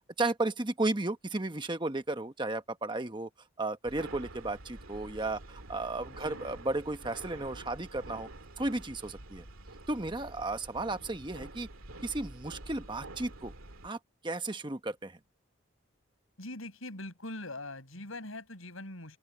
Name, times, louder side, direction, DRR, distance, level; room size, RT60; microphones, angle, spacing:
voice 1, 0.2-3.3 3.6-8.3 8.6-9.4 9.9-11.7 12.0-13.5 13.8-14.0 14.2-15.2, right 2 dB, 20° right, 1.0 m, -34 dB
sound 1, 3.8-13.9, right 2 dB, 90° right, 2.6 m, -47 dB
voice 2, 6.1-6.4 16.4-19.2, left 2 dB, 85° left, 7.9 m, -42 dB
open air
head